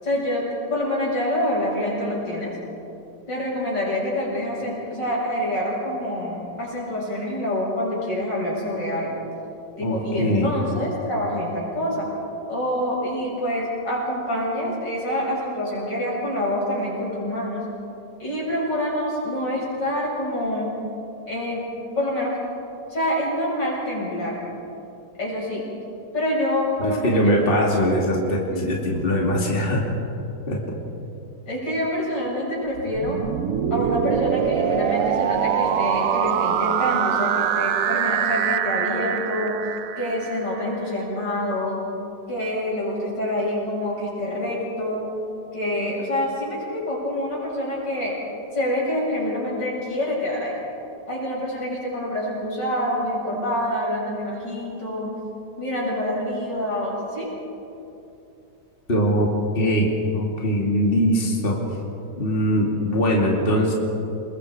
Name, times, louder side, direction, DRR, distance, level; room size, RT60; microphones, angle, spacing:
voice 1, 0.0-2.5 3.3-9.2 9.8-12.1 12.5-17.6 18.2-20.7 21.3-21.6 22.0-22.4 22.9-24.4 25.2-25.6 26.1-27.5 28.5-29.0 31.5-33.2 33.7-39.6 40.0-41.8 42.3-45.1 45.5-48.1 48.5-50.6 51.1-55.1 55.6-57.3, left 1 dB, 85° left, -5 dB, 8.0 m, -26 dB
voice 2, 9.8-10.6 26.8-30.0 30.5-30.6 58.9-61.6 62.2-63.7, equal, 30° left, -2 dB, 2.8 m, -21 dB
sound 1, 32.8-40.7, right 9 dB, 60° right, 1.0 m, -24 dB
29.5 x 21.5 x 5.0 m, 2.8 s
omnidirectional pair, 1.9 m